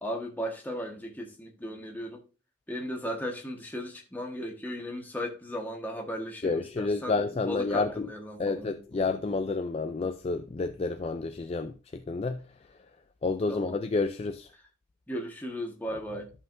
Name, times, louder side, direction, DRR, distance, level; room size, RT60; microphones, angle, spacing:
voice 1, 0.0-2.2 2.7-8.8 11.6-11.7 13.5-13.8 15.1-16.3, equal, 10° left, 1.4 m, -36 dB
voice 2, 6.4-8.1 8.4-12.4 13.2-14.5, left 3 dB, 30° left, 0.3 m, -30 dB
13.0 x 5.6 x 2.6 m
head